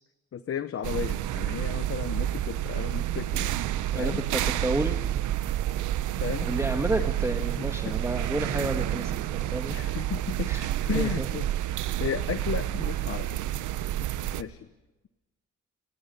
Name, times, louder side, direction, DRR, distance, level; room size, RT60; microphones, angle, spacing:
voice 1, 0.3-3.5 3.9-4.2 6.2-6.5 7.0-7.1 7.6-7.7 9.7-10.5 10.9-11.5 12.0-13.4 14.4-14.7, left 8 dB, 50° left, 12 dB, 1.0 m, -34 dB
sound 1, 0.8-14.4, right 13 dB, 80° right, 0.9 m, -29 dB
voice 2, 3.9-5.0 6.4-9.8 10.4-11.3, right 1 dB, 10° right, 4 dB, 1.7 m, -31 dB
29.0 x 21.5 x 5.5 m, 1.1 s
cardioid pair, 90°, 30 cm